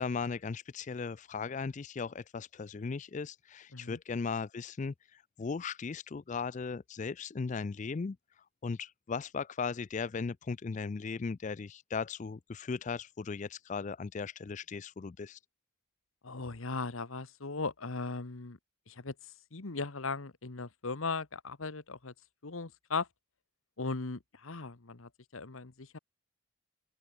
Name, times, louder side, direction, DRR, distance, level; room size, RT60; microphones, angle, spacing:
voice 1, 0.0-15.4, left 5 dB, 35° left, 0.4 m, -37 dB
voice 2, 16.2-18.6 18.9-22.1 22.4-23.1 23.8-26.0, left 4 dB, 70° left, 1.3 m, -38 dB
open air
head